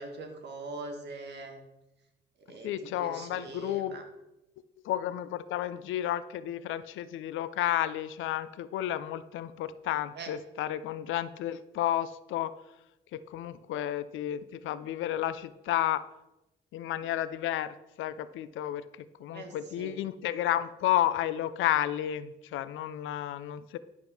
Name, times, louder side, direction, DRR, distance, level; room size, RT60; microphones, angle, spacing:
voice 1, 0.0-1.6 2.5-4.1 10.1-10.3 16.9-17.1 19.3-20.0, right 3 dB, 60° right, 4 dB, 1.6 m, -42 dB
voice 2, 2.6-4.0 4.8-12.5 13.1-16.0 16.7-18.9 19.2-23.8, left 12 dB, 80° left, 14 dB, 0.5 m, -32 dB
10.5 x 3.6 x 6.0 m, 0.97 s
cardioid pair, 90°, 20 cm